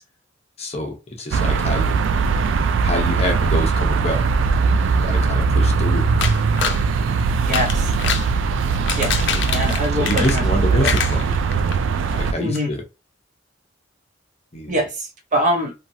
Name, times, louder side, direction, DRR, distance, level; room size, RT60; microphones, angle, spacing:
voice 1, 0.6-2.0 2.8-4.2 4.6-4.8 5.0-6.0 9.3-11.2 12.1-12.8 14.5-14.8, left 1 dB, 35° left, 0.8 m, -27 dB
sound 1, 1.3-12.3, right 5 dB, 85° right, 0.3 m, -20 dB
sound 2, 6.2-6.8 7.4-8.3 8.7-10.6 10.8-11.8 12.1-12.2 12.5-12.6, left 7 dB, 70° left, 0.5 m, -25 dB
voice 2, 7.4-7.9 9.0-9.2 9.5-10.4 10.7-10.9 12.4-12.7 14.7-15.7, equal, 40° right, 0.9 m, -23 dB
3.0 x 2.3 x 2.7 m
head